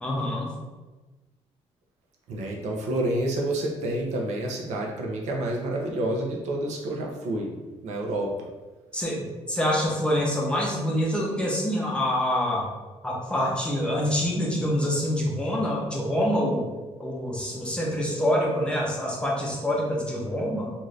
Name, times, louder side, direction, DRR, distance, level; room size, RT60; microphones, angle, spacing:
voice 1, 0.0-0.5 8.9-12.7 13.0-16.7 17.0-20.7, equal, 10° left, -3 dB, 0.6 m, -26 dB
voice 2, 2.3-7.5 7.8-8.3, right 1 dB, 75° right, 0 dB, 0.6 m, -28 dB
2.6 x 2.5 x 3.2 m, 1.2 s
cardioid pair, 155°, 12 cm